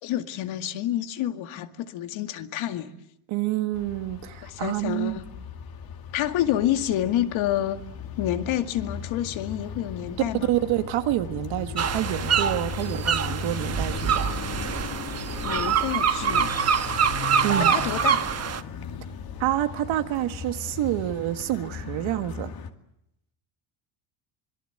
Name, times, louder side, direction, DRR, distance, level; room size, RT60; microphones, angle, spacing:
voice 1, 0.0-2.9 4.4-5.2 6.1-7.8 8.2-10.5 15.4-16.5 17.6-18.2, left 12 dB, 80° left, 2.2 m, -28 dB
voice 2, 3.3-5.2 10.5-14.3 17.4-17.7 19.4-22.5, right 14 dB, 80° right, 1.9 m, -28 dB
sound 1, 3.7-22.7, left 6 dB, 50° left, 2.4 m, -37 dB
sound 2, 11.8-18.6, right 7 dB, 30° right, 1.2 m, -25 dB
25.5 x 22.5 x 7.9 m
cardioid pair, 145°, 47 cm